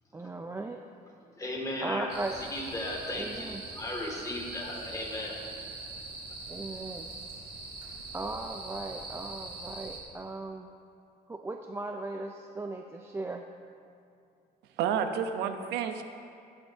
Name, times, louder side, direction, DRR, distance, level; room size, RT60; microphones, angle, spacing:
voice 1, 0.1-0.8 1.8-2.3 3.1-3.6 6.5-7.1 8.1-10.7 11.3-13.4, right 2 dB, 15° right, 3 dB, 0.5 m, -37 dB
voice 2, 1.4-2.1 2.5-5.4 7.8-7.9, left 1 dB, 20° left, -1 dB, 2.2 m, -36 dB
sound 1, 2.1-10.0, right 2 dB, 35° right, 2.8 m, -42 dB
voice 3, 14.8-16.0, right 7 dB, 85° right, 7 dB, 0.8 m, -30 dB
14.0 x 10.5 x 2.8 m, 2.5 s
cardioid pair, 110°, 17 cm